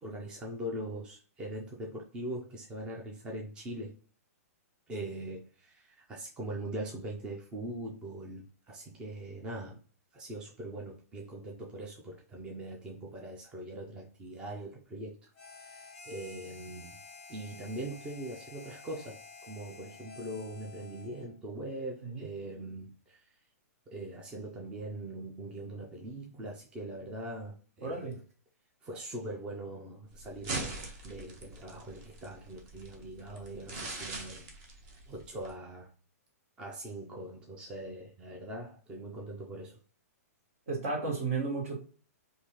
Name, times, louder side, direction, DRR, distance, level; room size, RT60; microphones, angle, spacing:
voice 1, 0.0-3.9 4.9-9.8 10.1-15.3 15.6-17.0 17.3-23.4 23.9-28.1 28.8-34.5 35.1-35.9 36.6-39.8, right 1 dB, 10° right, 0.4 m, -42 dB
Harmonica, 15.3-21.3, left 4 dB, 10° left, 1.0 m, -51 dB
voice 2, 27.8-28.2 40.7-41.8, right 4 dB, 60° right, 1.5 m, -33 dB
sound 1, 30.1-35.5, right 2 dB, 30° right, 0.8 m, -42 dB
3.5 x 2.6 x 3.0 m
hypercardioid pair, 160°, 9 cm